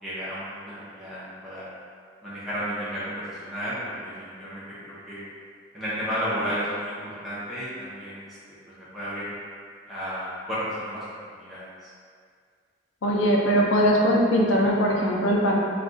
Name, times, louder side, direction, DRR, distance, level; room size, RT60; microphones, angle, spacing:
voice 1, 0.0-1.7 2.2-5.2 5.7-8.3 8.8-9.3 9.9-11.0 11.3-11.9, equal, ahead, -12 dB, 0.6 m, -33 dB
voice 2, 13.0-15.6, equal, 90° left, -2 dB, 0.5 m, -21 dB
2.4 x 2.3 x 3.7 m, 2.1 s
head